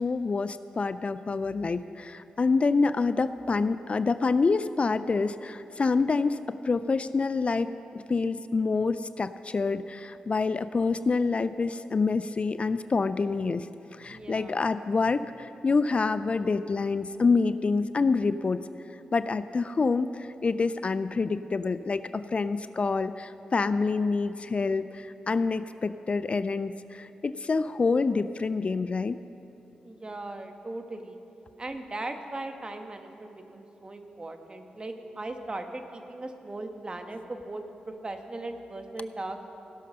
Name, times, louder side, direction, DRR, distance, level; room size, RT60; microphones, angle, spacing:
voice 1, 0.0-13.7 13.9-18.6 19.1-29.2, left 4 dB, 40° left, 13 dB, 0.3 m, -27 dB
voice 2, 14.1-14.6 29.8-31.2 31.6-39.4, right 2 dB, 30° right, 6 dB, 1.1 m, -38 dB
16.5 x 6.6 x 5.4 m, 2.9 s
cardioid pair, 55°, 3 cm